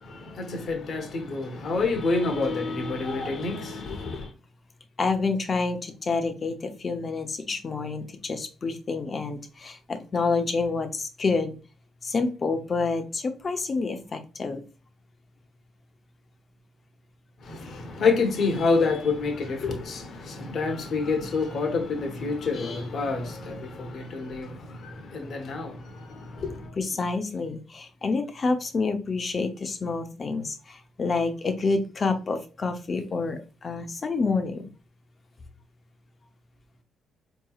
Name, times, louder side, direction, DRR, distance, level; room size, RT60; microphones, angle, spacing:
voice 1, 0.0-4.3 17.4-26.7, left 4 dB, 55° left, 1.0 m, -28 dB
voice 2, 5.0-11.6 12.0-14.6 26.8-34.7, left 4 dB, 40° left, 0.7 m, -28 dB
4.5 x 3.0 x 2.3 m
cardioid pair, 90°, 0 cm